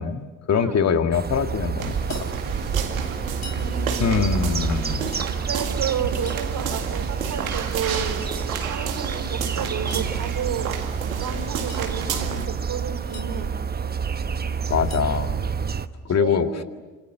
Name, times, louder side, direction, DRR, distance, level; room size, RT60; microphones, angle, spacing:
voice 1, 0.0-2.3 4.0-5.2 14.7-15.4 16.0-16.5, left 6 dB, 40° left, 7 dB, 2.0 m, -23 dB
sound 1, 1.1-15.9, right 6 dB, 25° right, 1.1 m, -28 dB
sound 2, 1.8-12.5, right 7 dB, 85° right, 2.2 m, -31 dB
sound 3, 1.9-2.3 3.3-3.7 4.8-5.3 6.0-6.5 7.7-8.1 9.6-10.1 11.4-11.9 12.8-13.3 14.6-15.1, left 3 dB, 85° left, 3.1 m, -44 dB
voice 2, 3.5-4.2 5.5-8.2 8.6-10.7 11.2-13.5 16.2-16.6, right 7 dB, 50° right, 6 dB, 4.3 m, -31 dB
29.0 x 26.5 x 6.8 m, 1.2 s
hypercardioid pair, 60°, 41 cm